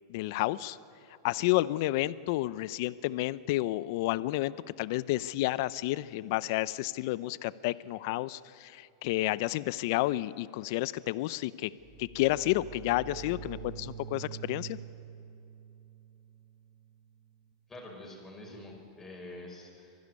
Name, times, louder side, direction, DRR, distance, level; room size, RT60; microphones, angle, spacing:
voice 1, 0.1-0.8 1.2-11.7 12.0-14.8, left 17 dB, 55° left, 17 dB, 0.6 m, -30 dB
sound 1, 11.7-17.3, right 7 dB, 25° right, 2.8 m, -46 dB
voice 2, 17.7-20.0, left 1 dB, 15° left, 0 dB, 5.8 m, -46 dB
24.5 x 11.5 x 9.6 m, 2.7 s
supercardioid pair, 135°, 2 cm